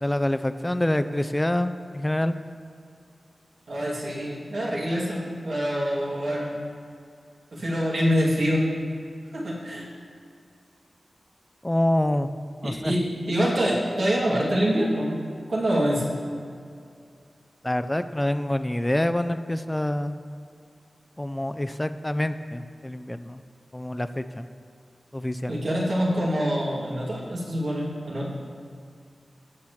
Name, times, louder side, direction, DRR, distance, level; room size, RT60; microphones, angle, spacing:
voice 1, 0.0-2.3 11.6-12.3 12.6-12.9 17.6-20.2 21.2-23.4 23.7-24.5 25.1-25.6, left 1 dB, 15° left, 10 dB, 0.4 m, -26 dB
voice 2, 3.7-6.5 7.5-8.6 9.3-9.9 12.6-15.2 15.5-16.0 25.5-28.3, equal, 70° right, -6 dB, 2.6 m, -25 dB
18.5 x 7.3 x 3.2 m, 2.4 s
wide cardioid pair, 110°, 0 cm